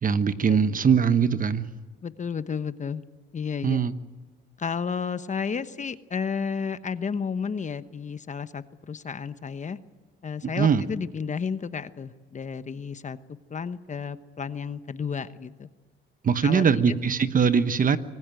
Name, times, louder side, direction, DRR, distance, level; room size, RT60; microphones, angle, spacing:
voice 1, 0.0-1.7 3.6-3.9 10.4-10.9 16.2-18.0, right 6 dB, 45° right, 12 dB, 1.2 m, -22 dB
voice 2, 2.0-3.0 3.3-3.8 4.6-9.8 10.2-13.2 13.5-15.7 16.4-16.8, left 6 dB, 40° left, 12 dB, 1.1 m, -32 dB
25.0 x 19.5 x 9.2 m, 1.2 s
cardioid pair, 90°, 20 cm